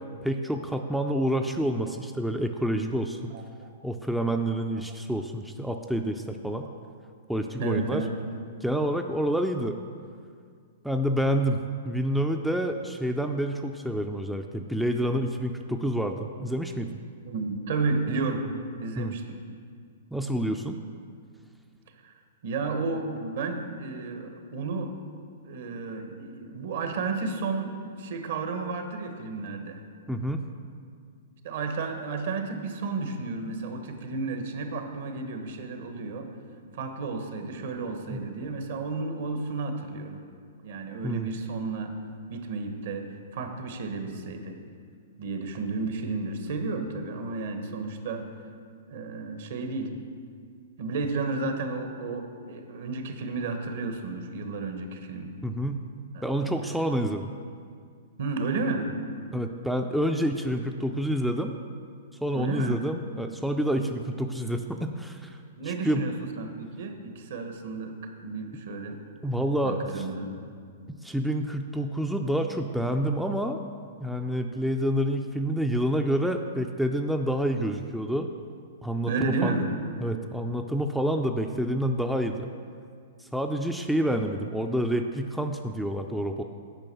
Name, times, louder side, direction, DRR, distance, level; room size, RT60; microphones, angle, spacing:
voice 1, 0.2-3.3 3.8-6.7 7.3-8.0 8.6-9.8 10.8-11.6 11.8-16.9 19.0-19.2 20.1-20.8 30.1-30.4 38.1-38.2 41.0-41.3 55.4-55.8 56.2-57.3 59.3-61.5 62.2-65.4 65.6-66.0 69.2-70.1 70.9-73.6 74.0-78.3 78.8-79.5 80.0-82.5 83.3-86.4, equal, ahead, 4 dB, 0.4 m, -28 dB
voice 2, 3.3-3.7 7.6-8.1 17.3-18.5 18.8-19.4 22.0-22.1 22.4-24.9 25.4-29.8 31.4-36.3 36.7-40.2 40.6-41.9 42.3-44.6 45.2-48.3 48.9-50.0 50.8-55.3 56.1-56.5 58.2-59.0 62.3-62.8 65.6-68.0 68.2-69.0 69.6-70.3 79.1-79.7, right 3 dB, 65° right, 5 dB, 1.2 m, -32 dB
9.1 x 5.3 x 6.9 m, 2.1 s
hypercardioid pair, 130°, 0 cm